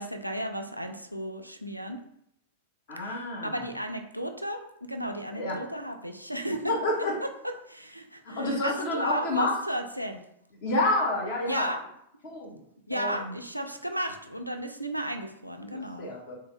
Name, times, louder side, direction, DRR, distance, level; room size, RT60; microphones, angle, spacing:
voice 1, 0.0-2.0 3.0-6.6 7.2-7.3 7.7-10.2 11.5-11.8 12.9-16.2, right 1 dB, 90° right, 4 dB, 0.3 m, -34 dB
voice 2, 2.9-3.6 5.3-5.6 6.6-7.1 8.2-9.6 10.6-11.7 12.2-12.6 12.9-13.3 15.7-16.3, left 2 dB, 50° left, -2 dB, 1.0 m, -29 dB
3.3 x 2.2 x 3.1 m, 0.74 s
figure-of-eight pair, 95°, 0 cm